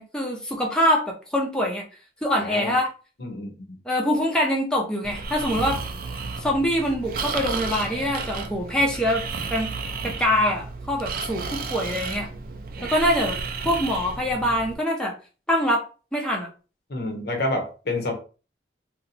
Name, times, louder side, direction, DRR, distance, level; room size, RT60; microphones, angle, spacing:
voice 1, 0.0-1.8 2.2-2.9 3.9-5.8 6.4-9.2 9.5-9.7 10.0-12.3 12.8-13.4 13.6-15.1 15.5-15.8 16.1-16.5, equal, 5° left, -1 dB, 0.5 m, -24 dB
voice 2, 2.4-2.8 3.2-3.8 12.8-12.9 16.9-18.1, left 2 dB, 60° left, 3 dB, 0.8 m, -29 dB
Breathing, 5.0-14.7, right 4 dB, 50° right, 0.4 m, -32 dB
2.7 x 2.1 x 4.0 m, 0.35 s
head